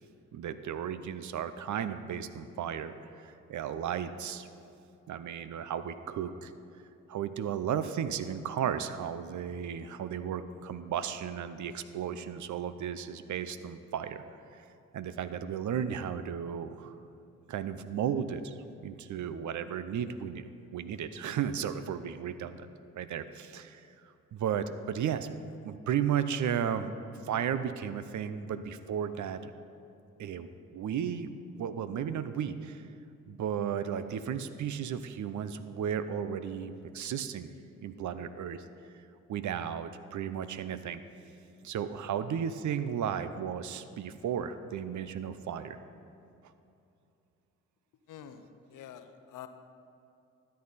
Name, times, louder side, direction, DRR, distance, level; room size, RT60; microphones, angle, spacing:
voice 1, 0.3-2.9 3.2-4.5 5.1-6.5 7.1-14.2 14.9-16.9 17.5-18.6 18.8-22.7 22.9-23.8 24.3-25.3 25.6-26.9 27.2-29.5 30.2-31.3 31.5-32.8 33.3-37.5 37.8-38.6 39.3-41.0 41.6-45.8, right 8 dB, 60° right, 12 dB, 0.7 m, -34 dB
voice 2, 48.1-48.4 48.7-49.5, left 10 dB, 65° left, 9 dB, 0.8 m, -46 dB
13.0 x 8.9 x 4.2 m, 2.6 s
supercardioid pair, 55°, 34 cm